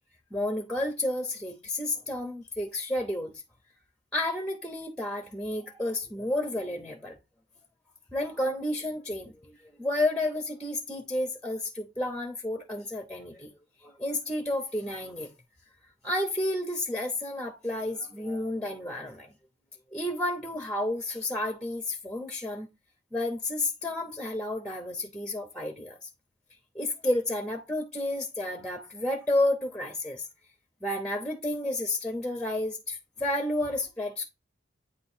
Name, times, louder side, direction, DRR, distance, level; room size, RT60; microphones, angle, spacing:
voice 1, 0.3-3.3 4.1-7.1 8.1-9.3 9.8-13.5 13.8-15.3 16.0-19.3 19.9-22.7 23.1-26.1 26.7-30.2 30.8-34.3, left 1 dB, 5° left, 0.8 m, -31 dB
8.8 x 3.0 x 4.3 m
head